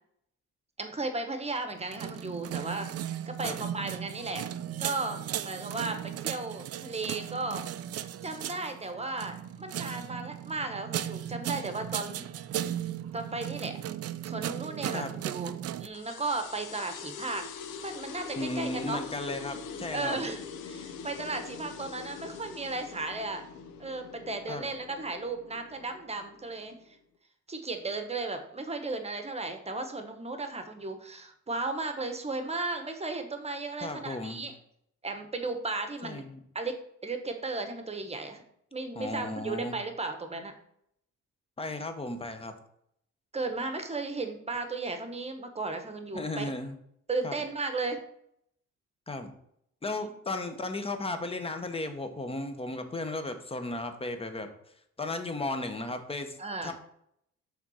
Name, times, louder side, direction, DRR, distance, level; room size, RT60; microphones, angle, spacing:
voice 1, 0.8-4.5 4.8-7.6 8.2-12.2 13.1-13.7 14.2-15.5 15.8-17.5 17.8-19.0 19.9-20.4 20.6-23.5 23.8-26.8 27.5-34.5 35.0-36.2 36.5-38.4 38.7-40.5 43.3-46.5 47.1-48.0 50.0-50.1 56.4-56.7, right 3 dB, 20° right, 6 dB, 1.0 m, -35 dB
sound 1, 1.7-15.9, right 11 dB, 55° right, 0.4 m, -36 dB
sound 2, 15.9-27.0, left 6 dB, 85° left, 0.7 m, -43 dB
voice 2, 18.4-20.2 24.5-24.7 33.8-34.4 36.0-36.4 39.0-39.7 41.6-42.5 46.1-46.8 47.2-47.4 49.1-49.3 49.8-54.5 55.0-56.7, left 2 dB, 20° left, 7 dB, 0.9 m, -35 dB
5.9 x 3.7 x 5.5 m, 0.71 s
cardioid pair, 90°, 30 cm